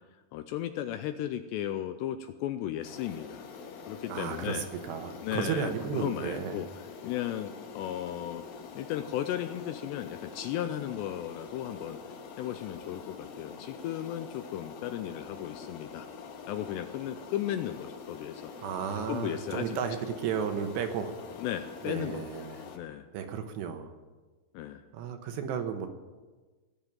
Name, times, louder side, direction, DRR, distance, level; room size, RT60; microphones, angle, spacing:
voice 1, 0.3-3.5 3.9-4.7 5.2-8.4 8.7-12.0 12.4-16.1 16.5-18.5 19.1-19.9 21.4-22.5 22.7-23.1 24.5-24.8, left 11 dB, 85° left, 9 dB, 2.5 m, -35 dB
sound 1, 2.8-22.8, left 5 dB, 65° left, 2.8 m, -45 dB
voice 2, 4.1-6.6 18.6-21.1 21.8-22.6 23.1-23.9 24.9-25.9, right 7 dB, 75° right, 6 dB, 3.0 m, -33 dB
19.0 x 7.1 x 9.0 m, 1.3 s
omnidirectional pair, 5.4 m